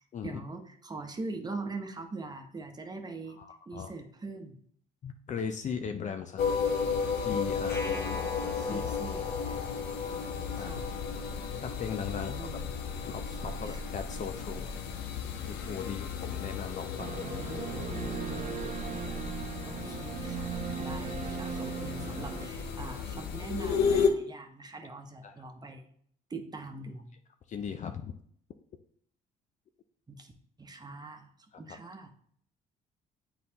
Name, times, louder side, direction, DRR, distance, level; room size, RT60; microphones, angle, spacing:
voice 1, 0.2-3.4 3.7-4.6 8.6-9.8 10.6-10.9 12.1-12.7 13.1-13.8 17.1-17.9 19.6-25.9 26.3-27.1 30.1-30.3 30.6-31.3 31.6-32.1, right 3 dB, 25° right, 4 dB, 1.0 m, -42 dB
voice 2, 3.4-3.9 5.0-6.5 7.2-8.3 8.5-8.8 10.5-10.8 11.6-12.5 13.0-14.7 15.5-17.3 18.6-18.7 25.2-25.3 27.5-28.1 31.5-31.6, left 7 dB, 50° left, 6 dB, 0.5 m, -38 dB
sound 1, 6.4-24.1, left 6 dB, 80° left, 0.7 m, -33 dB
sound 2, 7.7-10.8, left 1 dB, 15° left, 0.8 m, -43 dB
sound 3, 17.0-22.5, right 8 dB, 45° right, 0.5 m, -38 dB
8.2 x 3.9 x 2.9 m, 0.62 s
supercardioid pair, 70°, 16 cm